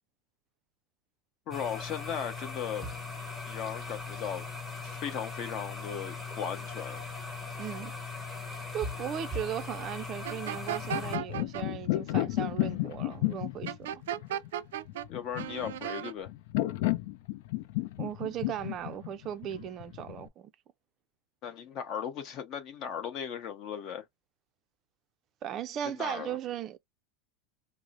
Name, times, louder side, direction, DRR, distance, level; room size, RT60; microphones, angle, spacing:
voice 1, 1.5-2.9 3.5-4.4 4.8-7.0 15.1-16.3 21.4-24.0 25.8-26.4, left 8 dB, 35° left, 1.0 m, -37 dB
sound 1, 1.5-11.2, left 3 dB, ahead, 1.0 m, -39 dB
voice 2, 7.6-7.9 8.7-13.9 18.0-20.5 25.4-26.8, right 10 dB, 30° right, 0.4 m, -37 dB
sound 2, 10.2-11.6 13.7-15.1 15.4-16.1, right 11 dB, 90° right, 0.4 m, -35 dB
sound 3, 10.6-20.3, left 17 dB, 60° left, 0.5 m, -33 dB
4.7 x 2.0 x 2.6 m
supercardioid pair, 160°, 0 cm